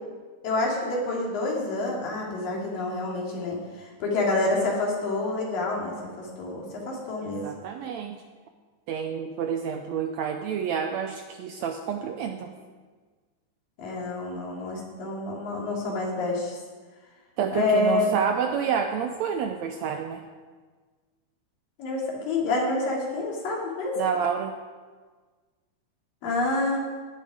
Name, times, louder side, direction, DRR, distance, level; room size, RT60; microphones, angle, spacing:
voice 1, 0.4-7.5 13.8-16.6 17.5-18.1 21.8-24.0 26.2-26.8, left 2 dB, 90° left, -2 dB, 4.4 m, -28 dB
voice 2, 7.2-8.2 8.9-12.5 17.4-20.2 24.0-24.5, right 7 dB, 80° right, 5 dB, 1.6 m, -29 dB
16.5 x 10.5 x 4.9 m, 1.5 s
omnidirectional pair, 3.8 m